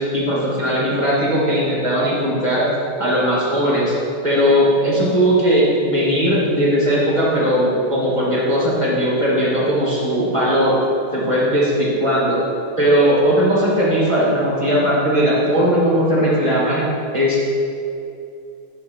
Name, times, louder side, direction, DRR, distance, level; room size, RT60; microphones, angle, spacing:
voice 1, 0.0-2.7 3.0-3.9 4.2-10.8 11.1-12.4 12.8-16.9 17.1-17.5, equal, 15° right, -6 dB, 1.8 m, -18 dB
10.0 x 3.6 x 5.9 m, 2.6 s
omnidirectional pair, 2.1 m